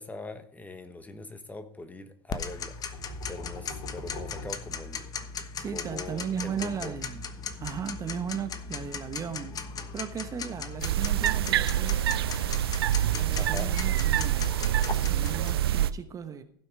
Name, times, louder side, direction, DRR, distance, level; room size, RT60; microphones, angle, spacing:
voice 1, 0.0-5.1 5.7-6.9 13.3-13.7, left 2 dB, 10° left, 1.3 m, -42 dB
Tick-tock, 2.3-15.5, left 5 dB, 30° left, 1.1 m, -38 dB
sound 1, 2.6-5.5, left 2 dB, 50° left, 3.0 m, -43 dB
voice 2, 5.6-7.2 7.6-9.6 9.9-12.0 13.0-14.5 15.1-16.4, right 7 dB, 25° right, 1.1 m, -36 dB
sound 2, 10.8-15.9, right 12 dB, 80° right, 0.5 m, -26 dB
16.0 x 6.0 x 4.8 m
hypercardioid pair, 95°, 13 cm